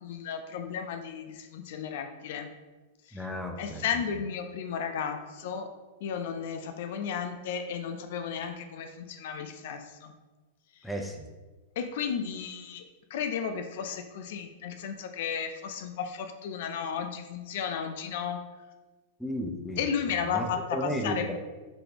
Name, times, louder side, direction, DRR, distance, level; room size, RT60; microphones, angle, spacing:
voice 1, 0.0-2.5 3.1-3.3 3.6-5.7 6.0-10.1 10.8-10.9 11.8-12.8 13.1-18.4 19.8-21.4, left 7 dB, 65° left, 7 dB, 0.4 m, -34 dB
voice 2, 3.1-3.8 10.8-11.3 19.2-19.8 20.3-20.4 20.7-21.4, equal, 5° left, 3 dB, 0.5 m, -33 dB
4.0 x 3.3 x 2.9 m, 1.2 s
hypercardioid pair, 115°, 0 cm